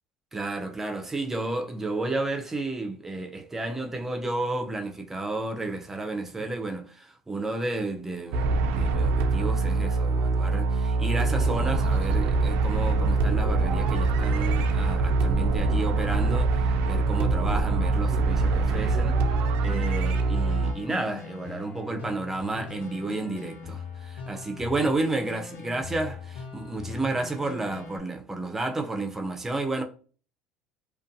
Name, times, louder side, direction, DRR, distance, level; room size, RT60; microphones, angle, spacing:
voice 1, 0.3-19.2 19.6-29.8, right 2 dB, 15° right, 0.5 m, -32 dB
sound 1, 8.3-20.7, right 3 dB, 70° right, 0.3 m, -24 dB
sound 2, 19.3-28.0, left 4 dB, 65° left, 0.8 m, -40 dB
2.5 x 2.2 x 2.6 m
supercardioid pair, 100°, 3 cm